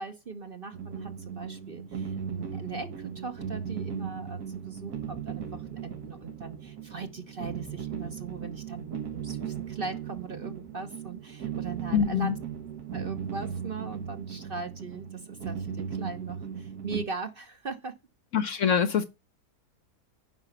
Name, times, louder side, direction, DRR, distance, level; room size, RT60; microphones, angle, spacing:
voice 1, 0.0-12.3 12.9-17.9 18.4-18.6, right 4 dB, 40° right, 1.0 m, -39 dB
sound 1, 0.7-17.0, right 7 dB, 75° right, 1.7 m, -37 dB
voice 2, 11.9-12.4 18.3-19.0, left 7 dB, 60° left, 1.1 m, -24 dB
9.9 x 5.5 x 6.0 m
omnidirectional pair, 1.7 m